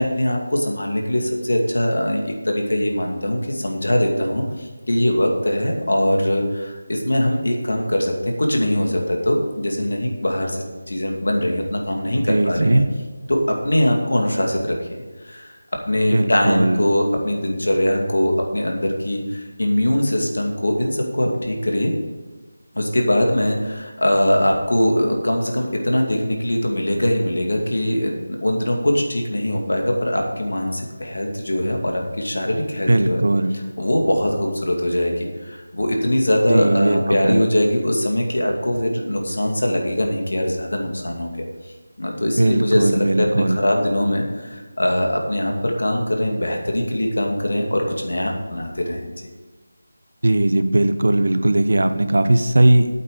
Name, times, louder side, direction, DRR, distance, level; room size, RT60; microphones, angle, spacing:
voice 1, 0.0-12.8 13.3-15.5 15.9-21.9 22.8-33.2 33.8-41.3 42.0-49.3, left 1 dB, 75° left, 1 dB, 2.4 m, -22 dB
voice 2, 12.3-12.9 16.1-16.9 32.9-33.5 36.5-37.4 42.4-43.6 50.2-52.9, right 1 dB, 70° right, 10 dB, 0.9 m, -18 dB
8.6 x 8.5 x 6.8 m, 1.3 s
figure-of-eight pair, 170°, 0 cm